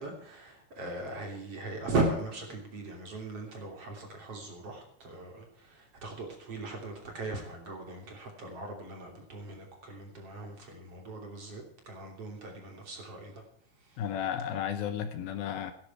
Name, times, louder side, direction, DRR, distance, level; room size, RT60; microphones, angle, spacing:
voice 1, 0.0-13.4 13.8-14.0, right 2 dB, 40° right, 2 dB, 3.6 m, -38 dB
voice 2, 14.0-15.7, left 9 dB, 75° left, 9 dB, 2.6 m, -33 dB
16.5 x 12.0 x 4.7 m, 0.67 s
omnidirectional pair, 4.7 m